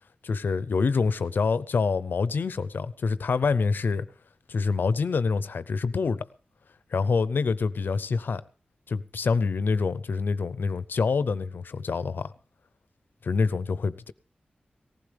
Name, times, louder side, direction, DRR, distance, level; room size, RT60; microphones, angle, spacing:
voice 1, 0.2-4.0 4.5-6.3 6.9-8.4 8.9-12.3 13.2-14.1, left 4 dB, 80° left, 0.6 m, -26 dB
18.5 x 15.5 x 3.4 m
wide cardioid pair, 115°, 3 cm